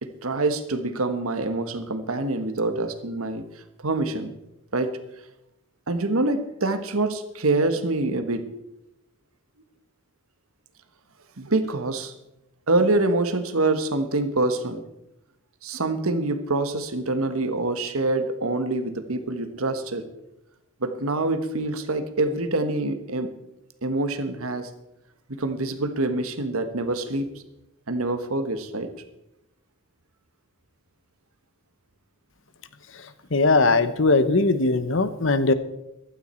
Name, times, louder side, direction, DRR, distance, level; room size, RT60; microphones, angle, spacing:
voice 1, 0.0-3.4 3.8-4.3 4.7-4.9 5.9-8.5 11.4-12.1 12.7-14.8 15.6-20.1 20.8-23.3 23.8-24.7 25.3-27.4 27.9-28.9, right 2 dB, 75° right, 9 dB, 1.4 m, -25 dB
voice 2, 33.3-35.5, left 3 dB, 60° left, 12 dB, 1.0 m, -20 dB
15.5 x 12.5 x 4.4 m, 0.87 s
head